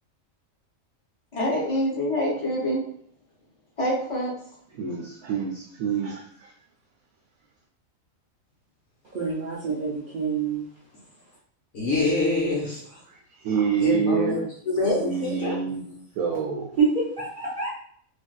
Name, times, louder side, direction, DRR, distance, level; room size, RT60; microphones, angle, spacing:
voice 1, 1.3-2.8 3.8-4.3, equal, 30° left, -4 dB, 0.8 m, -25 dB
voice 2, 4.7-6.5 13.1-13.2 13.4-14.5 14.8-15.8 16.2-16.8, right 6 dB, 85° right, -1 dB, 1.0 m, -27 dB
voice 3, 9.1-10.7 16.8-17.7, right 5 dB, 50° right, -6 dB, 0.6 m, -26 dB
voice 4, 11.7-13.0 13.8-15.6 15.8-16.0, left 3 dB, 65° left, -5 dB, 1.1 m, -26 dB
3.4 x 2.5 x 2.3 m, 0.62 s
omnidirectional pair, 1.4 m